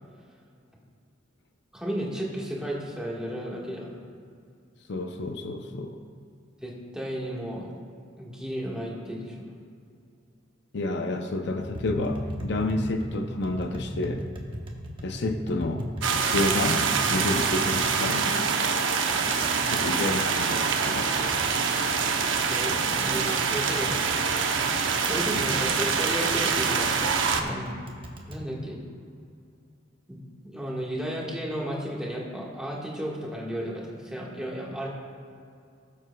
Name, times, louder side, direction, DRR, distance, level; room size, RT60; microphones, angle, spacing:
voice 1, 1.7-3.9 6.6-7.7 8.2-9.4 22.3-24.0 25.0-27.8 28.3-28.8 30.1-34.9, equal, 5° right, -4 dB, 1.5 m, -33 dB
voice 2, 4.9-6.0 10.7-14.3 15.0-15.9 16.1-18.8 19.7-21.1 25.4-25.7, left 2 dB, 60° left, 5 dB, 0.6 m, -30 dB
Tap, 11.6-28.4, equal, 25° right, 1.0 m, -39 dB
sound 1, 16.0-27.4, right 5 dB, 85° right, 0.8 m, -25 dB
17.0 x 7.5 x 2.3 m, 2.4 s
head